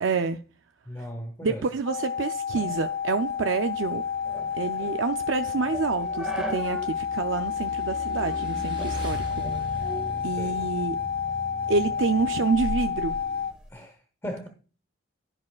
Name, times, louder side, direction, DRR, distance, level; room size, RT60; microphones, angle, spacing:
voice 1, 0.0-0.4 1.4-4.0 4.5-9.4 9.7-9.9 10.2-11.0 11.7-13.1, right 4 dB, 70° right, 0.5 m, -28 dB
voice 2, 0.9-1.7 10.4-10.6 13.7-14.5, equal, 15° left, 1.1 m, -37 dB
sound 1, 1.8-13.5, left 7 dB, 50° left, 0.9 m, -30 dB
sound 2, 2.5-7.0 7.3-7.4 8.1-8.4 8.8-10.9 11.3-13.7, right 1 dB, 5° right, 1.9 m, -39 dB
Motorcycle / Engine, 3.7-13.5, right 1 dB, 25° right, 3.3 m, -41 dB
10.5 x 9.7 x 2.4 m
head